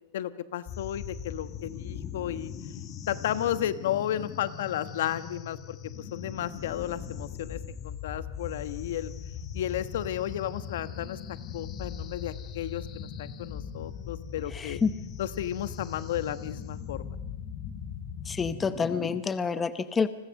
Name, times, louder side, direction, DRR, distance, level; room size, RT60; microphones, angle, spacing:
voice 1, 0.1-2.5 3.1-9.1 9.5-14.8 15.2-17.2, left 11 dB, 70° left, 12 dB, 1.2 m, -33 dB
sound 1, 0.7-19.2, left 7 dB, 30° left, 1.7 m, -40 dB
voice 2, 14.5-14.9 18.2-20.1, left 5 dB, 15° left, 12 dB, 0.7 m, -28 dB
29.5 x 20.5 x 6.6 m, 0.99 s
supercardioid pair, 160°, 0 cm